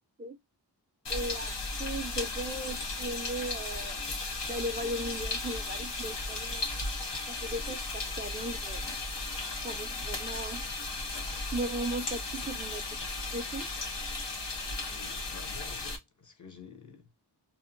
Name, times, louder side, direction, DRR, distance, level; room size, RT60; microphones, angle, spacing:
sound 1, 1.0-16.0, left 3 dB, 80° left, 0.9 m, -35 dB
voice 1, 1.1-1.5 1.8-4.0 4.5-6.7 7.3-8.9 9.6-10.7 11.5-13.0 13.3-13.7, right 1 dB, 25° right, 0.5 m, -37 dB
voice 2, 14.9-17.1, left 6 dB, 45° left, 0.8 m, -50 dB
2.6 x 2.1 x 2.4 m
wide cardioid pair, 50°, 42 cm